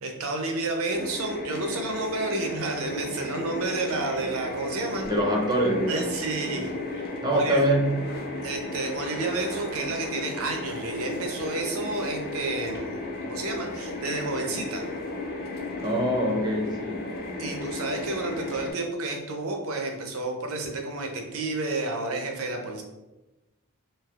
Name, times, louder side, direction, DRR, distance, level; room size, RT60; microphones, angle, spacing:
voice 1, 0.0-5.1 5.9-7.6 8.4-14.8 17.4-22.8, right 2 dB, 70° right, 3 dB, 0.5 m, -31 dB
sound 1, 0.9-18.7, left 2 dB, 45° left, 0.4 m, -35 dB
voice 2, 5.0-6.1 7.2-8.0 15.8-17.2, equal, 20° right, 0 dB, 0.4 m, -24 dB
3.3 x 2.7 x 2.3 m, 1.1 s
head